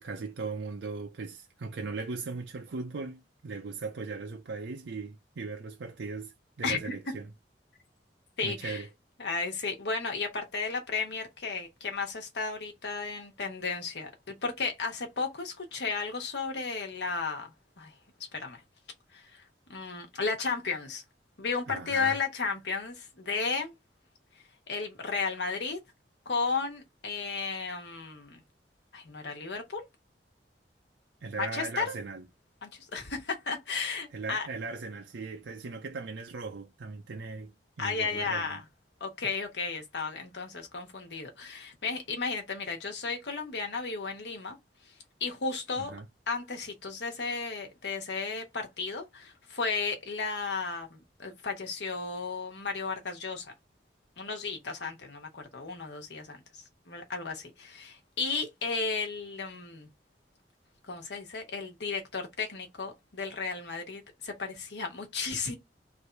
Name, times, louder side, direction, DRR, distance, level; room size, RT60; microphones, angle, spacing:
voice 1, 0.0-7.3 8.4-8.9 21.7-22.2 31.2-32.3 34.1-38.6 45.8-46.1, right 4 dB, 90° right, 0.5 m, -38 dB
voice 2, 6.6-6.9 8.4-8.8 9.2-17.5 17.8-17.9 18.3-18.6 19.1-19.4 19.7-21.0 21.4-23.7 24.7-25.8 26.2-28.4 28.9-29.8 31.4-32.0 32.6-34.5 37.8-38.6 39.0-44.6 45.2-46.0 46.3-53.5 54.2-59.9 60.9-65.5, left 4 dB, 70° left, 1.1 m, -34 dB
3.3 x 2.7 x 4.4 m
head